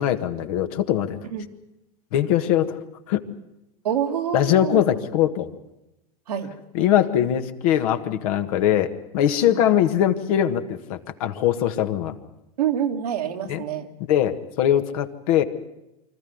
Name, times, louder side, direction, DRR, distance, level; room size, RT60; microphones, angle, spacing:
voice 1, 0.0-1.2 2.1-2.8 3.1-3.2 4.3-5.5 6.7-12.2 13.5-13.6 14.1-15.4, left 11 dB, 70° left, 7 dB, 1.8 m, -21 dB
voice 2, 3.8-4.8 6.3-6.5 9.5-9.6 12.6-13.9, right 9 dB, 90° right, 3 dB, 2.2 m, -26 dB
25.0 x 14.0 x 9.5 m, 0.90 s
hypercardioid pair, 100°, 19 cm